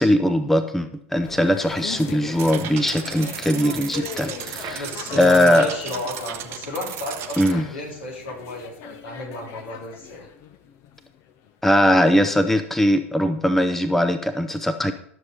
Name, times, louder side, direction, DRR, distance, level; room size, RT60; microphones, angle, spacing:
voice 1, 0.0-4.8 5.1-5.7 7.4-7.7 11.6-14.9, left 1 dB, 5° left, 9 dB, 0.7 m, -20 dB
sound 1, 1.2-11.7 12.0-12.1, left 8 dB, 45° left, 1.2 m, -40 dB
sound 2, 2.4-7.5, right 11 dB, 40° right, 1.0 m, -35 dB
voice 2, 4.7-10.3, left 1 dB, 70° left, -1 dB, 4.1 m, -33 dB
12.5 x 6.8 x 5.1 m, 0.69 s
figure-of-eight pair, 85°, 7 cm